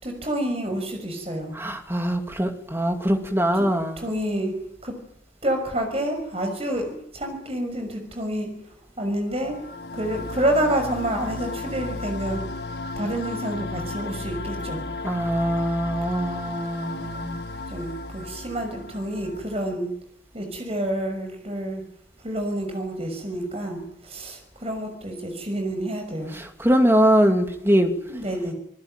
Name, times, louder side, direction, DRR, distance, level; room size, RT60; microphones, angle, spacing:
voice 1, 0.0-1.6 3.6-3.7 4.0-4.6 4.8-4.9 5.4-9.6 9.9-12.4 13.0-14.8 17.7-19.9 20.3-21.8 22.2-26.4 28.1-28.5, right 1 dB, 35° right, 4 dB, 6.1 m, -28 dB
voice 2, 1.5-4.0 15.0-17.4 26.3-27.9, equal, 15° right, 5 dB, 2.8 m, -22 dB
sound 1, 9.3-19.7, left 2 dB, 60° left, 1.5 m, -34 dB
28.0 x 20.0 x 9.2 m, 0.74 s
head